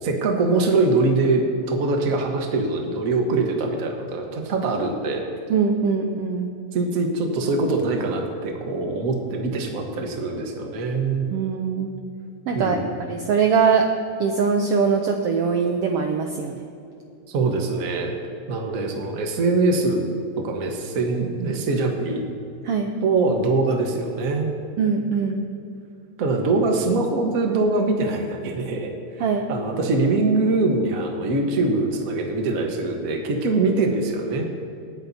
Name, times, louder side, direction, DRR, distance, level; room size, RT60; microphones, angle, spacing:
voice 1, 0.0-5.2 6.7-11.3 12.5-13.0 17.3-18.1 18.5-20.0 20.4-22.2 23.0-24.5 26.2-28.9 29.5-34.5, right 3 dB, 45° right, 2 dB, 1.1 m, -23 dB
voice 2, 5.5-6.5 11.3-11.9 12.5-12.8 13.1-13.9 14.2-16.6 22.6-22.9 24.8-25.5 29.2-29.5, right 6 dB, 75° right, 3 dB, 1.4 m, -22 dB
26.5 x 9.0 x 2.8 m, 2.5 s
omnidirectional pair, 3.3 m